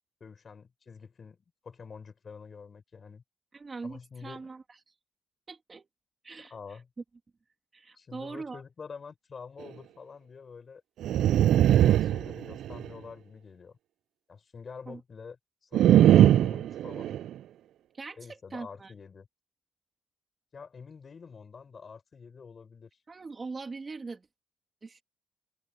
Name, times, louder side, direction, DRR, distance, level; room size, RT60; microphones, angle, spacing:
voice 1, 0.2-1.4 1.6-3.2 3.8-4.5 6.5-6.9 8.0-10.8 11.7-13.8 14.3-15.4 15.6-17.1 18.1-19.3 20.5-22.9, left 5 dB, 30° left, 4.5 m, -47 dB
voice 2, 3.5-4.6 5.5-5.9 6.2-6.5 7.7-8.6 14.9-15.0 17.9-18.9 23.1-24.3 24.8-25.0, right 4 dB, 20° right, 2.9 m, -41 dB
sound 1, 11.0-12.9 15.7-17.3, right 11 dB, 65° right, 0.3 m, -21 dB
cardioid pair, 175°, 0 cm